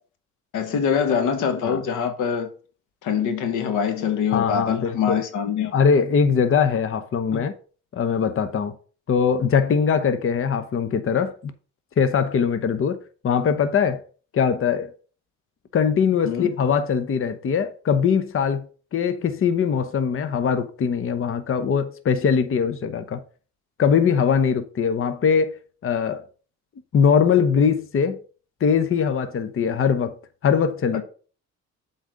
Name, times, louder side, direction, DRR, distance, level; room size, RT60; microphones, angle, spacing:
voice 1, 0.5-2.5 3.0-5.7 7.3-7.4 16.2-16.5 30.9-31.0, left 7 dB, 90° left, 1.4 m, -24 dB
voice 2, 4.3-5.2 5.7-7.5 7.9-8.7 9.1-11.5 12.0-13.0 13.2-14.0 14.3-14.9 15.7-18.7 18.9-23.2 23.8-26.3 26.9-28.2 28.6-30.2 30.4-31.0, left 6 dB, 45° left, 0.9 m, -21 dB
7.9 x 4.0 x 6.3 m
cardioid pair, 90°, 30 cm